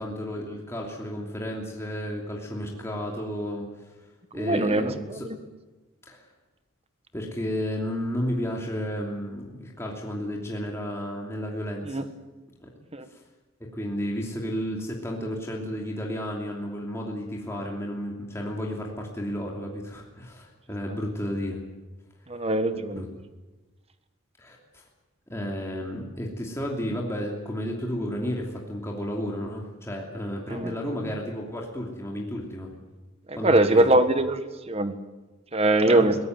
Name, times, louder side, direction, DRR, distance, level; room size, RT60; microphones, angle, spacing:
voice 1, 0.0-4.1 4.3-5.3 6.1-6.3 7.1-12.0 12.6-12.7 13.1-13.2 13.6-21.6 22.7-23.1 24.4-24.8 25.3-32.7 33.4-33.9 35.8-36.1, equal, 15° left, -1 dB, 2.9 m, -32 dB
voice 2, 4.3-5.4 11.9-12.0 12.9-13.0 22.3-23.0 33.3-34.4 34.7-34.9 35.5-36.1, right 2 dB, 30° right, 10 dB, 1.5 m, -22 dB
22.0 x 17.5 x 9.4 m, 1.2 s
head